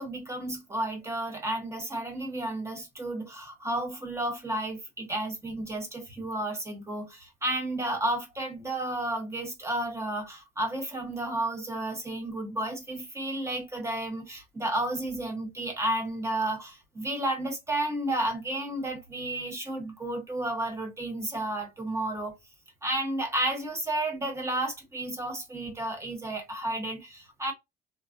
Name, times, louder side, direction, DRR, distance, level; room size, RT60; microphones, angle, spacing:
voice 1, 0.0-22.3 22.8-27.5, right 1 dB, 15° right, 1.0 m, -32 dB
3.1 x 2.1 x 2.5 m
cardioid pair, 110°, 17 cm